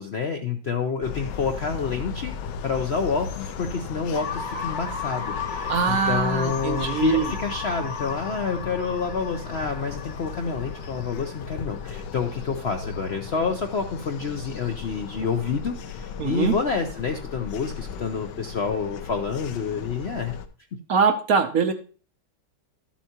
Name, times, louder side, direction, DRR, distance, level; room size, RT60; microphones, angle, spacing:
voice 1, 0.0-2.3 2.6-20.3, left 5 dB, 60° left, 4 dB, 0.7 m, -28 dB
sound 1, 1.0-20.5, left 6 dB, 75° left, 1.3 m, -36 dB
sound 2, 4.1-12.0, left 5 dB, 35° left, 0.9 m, -35 dB
voice 2, 5.7-7.3 16.2-16.5 20.9-21.7, right 6 dB, 60° right, 7 dB, 1.0 m, -22 dB
12.5 x 7.2 x 2.9 m, 0.38 s
omnidirectional pair, 1.9 m